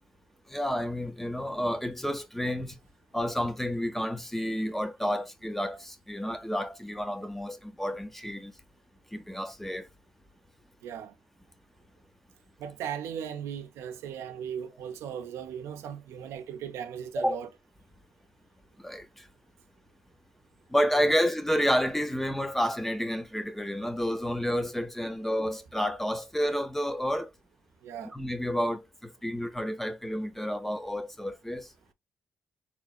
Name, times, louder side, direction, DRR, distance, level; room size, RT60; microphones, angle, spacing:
voice 1, 0.5-2.8 3.1-8.5 9.1-9.9 17.2-17.4 18.8-19.3 20.7-27.3 28.0-31.7, equal, 5° left, 0.6 m, -30 dB
voice 2, 10.8-11.1 12.6-17.5 20.9-21.1 27.8-28.1, right 8 dB, 90° right, 0.5 m, -37 dB
3.9 x 3.1 x 2.3 m
cardioid pair, 70°, 5 cm